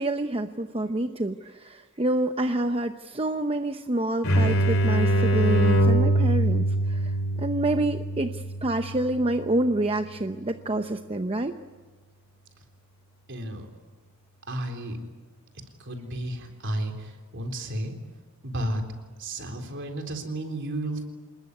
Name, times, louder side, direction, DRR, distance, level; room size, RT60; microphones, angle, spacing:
voice 1, 0.0-11.5, right 1 dB, 25° right, 7 dB, 0.8 m, -27 dB
sound 1, 4.2-9.7, right 1 dB, 65° left, 3.9 m, -23 dB
voice 2, 13.3-13.7 14.5-15.0 15.8-18.0 18.4-18.8 19.2-21.0, right 1 dB, 55° right, 4 dB, 3.9 m, -32 dB
27.5 x 20.5 x 9.7 m, 1.3 s
head